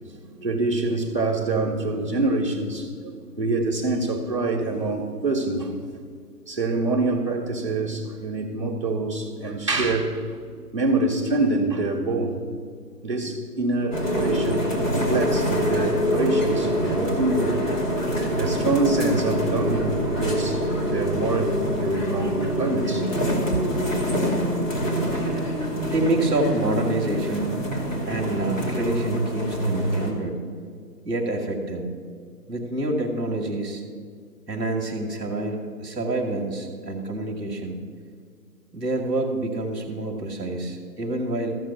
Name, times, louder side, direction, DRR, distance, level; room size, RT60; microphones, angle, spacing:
voice 1, 0.1-5.7 6.5-10.2 10.7-12.4 13.0-14.6 14.9-17.8 18.4-23.6, right 2 dB, 20° right, -5 dB, 1.1 m, -26 dB
sound 1, 13.9-30.1, equal, 50° left, 2.7 m, -25 dB
voice 2, 25.6-27.6 28.1-30.4 31.0-31.9 32.5-33.8 34.5-37.8 38.7-41.6, right 2 dB, ahead, -16 dB, 0.7 m, -27 dB
14.0 x 7.1 x 7.0 m, 2.1 s
hypercardioid pair, 175°, 48 cm